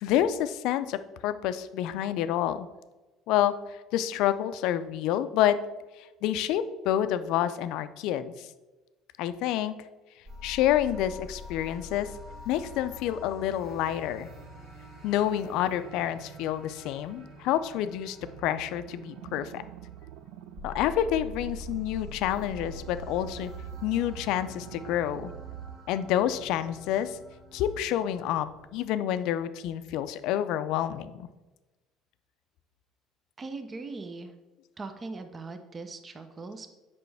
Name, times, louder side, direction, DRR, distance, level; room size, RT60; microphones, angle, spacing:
voice 1, 0.0-2.7 3.3-5.6 6.2-8.5 9.2-9.7 10.4-12.1 12.5-14.3 15.0-18.2 18.4-19.6 20.6-23.5 23.8-25.3 25.9-27.2 27.5-28.5 28.7-31.3, left 11 dB, 70° left, 12 dB, 0.4 m, -28 dB
sound 1, 10.3-28.9, left 3 dB, 60° right, 1.8 m, -46 dB
sound 2, 18.2-25.8, right 11 dB, 80° right, 0.3 m, -44 dB
voice 2, 33.4-34.3 34.8-36.7, right 3 dB, 30° right, 7 dB, 0.6 m, -40 dB
6.8 x 5.3 x 3.4 m, 1.1 s
supercardioid pair, 80°, 0 cm